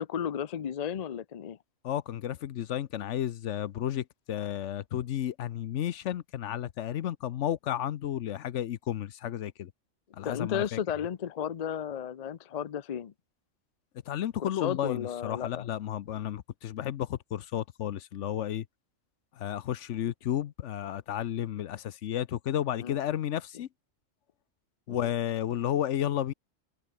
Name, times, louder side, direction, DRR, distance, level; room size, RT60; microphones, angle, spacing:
voice 1, 0.0-1.6 10.2-13.1 14.4-15.7 22.8-23.0 24.9-25.1, left 8 dB, 50° left, 0.5 m, -33 dB
voice 2, 1.8-9.7 10.1-10.8 14.1-18.6 19.4-23.7 24.9-26.3, left 11 dB, 65° left, 1.0 m, -32 dB
omnidirectional pair, 1.4 m